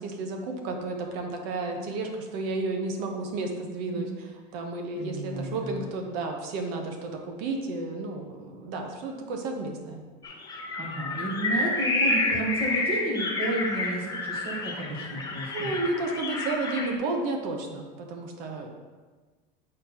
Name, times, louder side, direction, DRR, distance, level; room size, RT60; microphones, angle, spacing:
voice 1, 0.0-4.1 4.5-10.0 15.5-18.7, right 3 dB, 65° right, 3 dB, 1.2 m, -32 dB
voice 2, 4.9-5.8 10.8-15.7, right 1 dB, 25° right, -4 dB, 1.9 m, -32 dB
sound 1, 10.2-16.9, left 2 dB, 15° left, 0.7 m, -29 dB
8.0 x 4.4 x 4.4 m, 1.4 s
cardioid pair, 165°, 21 cm